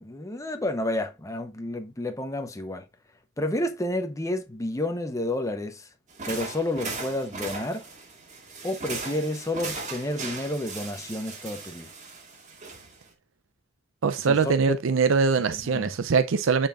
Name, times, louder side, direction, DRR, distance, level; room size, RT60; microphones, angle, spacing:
voice 1, 0.0-2.8 3.4-5.9 6.3-7.8 8.6-11.9 14.2-14.8 15.5-15.9, left 1 dB, 15° left, 0.8 m, -30 dB
sound 1, 6.1-13.1, right 3 dB, 35° right, 1.8 m, -38 dB
voice 2, 14.0-16.7, right 5 dB, 70° right, 0.5 m, -22 dB
8.9 x 4.3 x 2.4 m
head